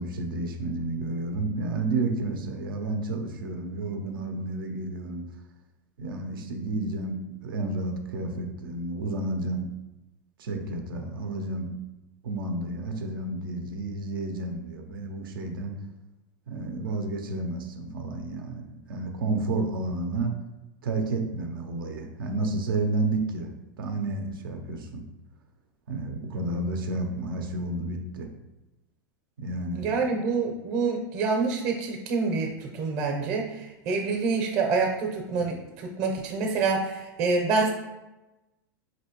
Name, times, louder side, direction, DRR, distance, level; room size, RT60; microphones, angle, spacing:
voice 1, 0.0-5.2 6.0-9.7 10.4-11.7 12.2-15.7 16.5-20.3 20.8-23.5 23.8-25.0 25.9-28.3 29.4-30.2, right 2 dB, 80° right, 4 dB, 0.7 m, -31 dB
voice 2, 29.8-37.7, right 4 dB, 45° right, 1 dB, 0.8 m, -27 dB
5.1 x 3.0 x 2.9 m, 1.0 s
hypercardioid pair, 110°, 11 cm